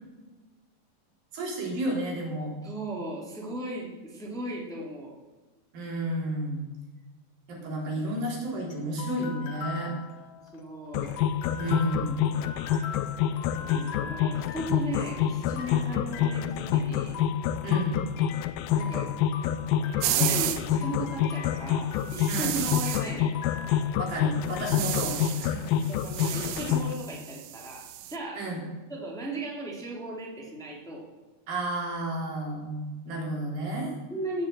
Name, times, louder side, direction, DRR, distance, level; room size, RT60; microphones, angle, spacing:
voice 1, 1.3-2.5 5.7-6.6 7.5-9.9 11.6-12.2 17.6-18.0 22.3-22.6 24.0-25.8 28.4-28.6 31.5-33.9, right 1 dB, 70° right, -2 dB, 5.6 m, -32 dB
voice 2, 2.6-5.1 10.5-11.2 13.3-17.1 18.7-19.1 20.0-23.3 25.8-28.5 28.9-31.1 33.1-33.3 34.1-34.5, right 1 dB, ahead, -3 dB, 2.5 m, -37 dB
sound 1, 8.0-24.7, left 6 dB, 60° left, 2.2 m, -42 dB
sound 2, 10.9-26.9, left 10 dB, 85° left, 2.5 m, -27 dB
sound 3, 20.0-20.6 22.1-23.1 24.5-25.5 25.8-28.2, right 13 dB, 90° right, 2.6 m, -32 dB
17.0 x 7.1 x 7.8 m, 1.2 s
omnidirectional pair, 4.2 m